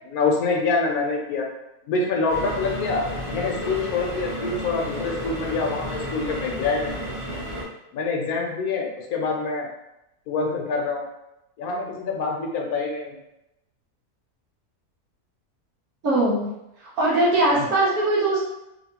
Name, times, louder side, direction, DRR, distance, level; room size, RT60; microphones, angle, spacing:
voice 1, 0.1-1.5 1.9-7.0 7.9-9.7 10.3-11.1 11.6-13.2 17.6-17.7, left 4 dB, 75° left, 0 dB, 1.1 m, -26 dB
sound 1, 2.3-7.6, equal, 20° right, 1.1 m, -32 dB
voice 2, 16.0-16.5 17.0-18.4, right 2 dB, 70° right, -6 dB, 1.3 m, -20 dB
3.1 x 2.6 x 2.8 m, 0.89 s
omnidirectional pair, 1.6 m